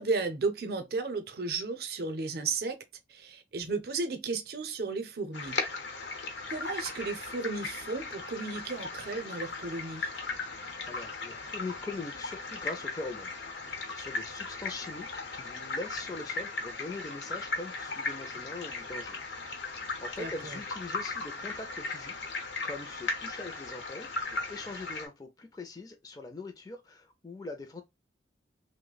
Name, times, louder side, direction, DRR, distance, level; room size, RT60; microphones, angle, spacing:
voice 1, 0.0-2.8 3.1-5.6 6.5-10.1 20.2-20.5, right 3 dB, 55° right, 0.6 m, -34 dB
sound 1, 5.3-25.1, left 3 dB, 90° left, 0.8 m, -37 dB
voice 2, 10.8-13.3 13.6-19.2 19.5-22.2 22.6-27.8, left 3 dB, 20° left, 0.4 m, -42 dB
3.0 x 2.1 x 3.8 m
head